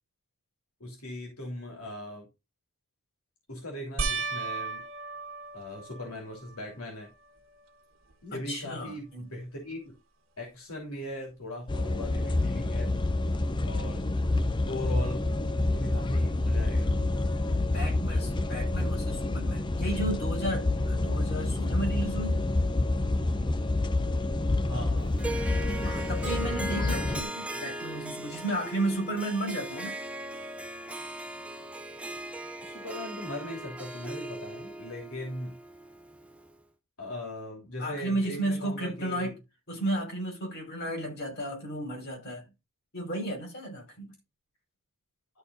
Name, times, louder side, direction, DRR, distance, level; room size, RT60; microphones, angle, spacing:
voice 1, 0.8-2.3 3.5-4.8 5.5-7.1 8.2-9.9 10.4-13.0 13.6-14.0 14.7-15.3 15.7-16.9 24.7-25.1 25.7-26.1 32.6-35.6 37.0-39.3, left 1 dB, 90° left, 3.4 m, -39 dB
sound 1, 4.0-6.6 7.2-7.8 8.1-8.2 11.4-11.5, right 4 dB, 65° right, 1.5 m, -35 dB
voice 2, 8.3-9.3 17.7-22.5 25.8-30.0 37.8-39.3 39.7-42.5 42.9-44.1, right 1 dB, 50° left, 6.0 m, -33 dB
sound 2, 11.7-27.2, left 2 dB, 20° left, 0.5 m, -28 dB
Harp, 25.2-36.5, right 1 dB, 5° right, 0.8 m, -38 dB
13.0 x 4.4 x 4.0 m
head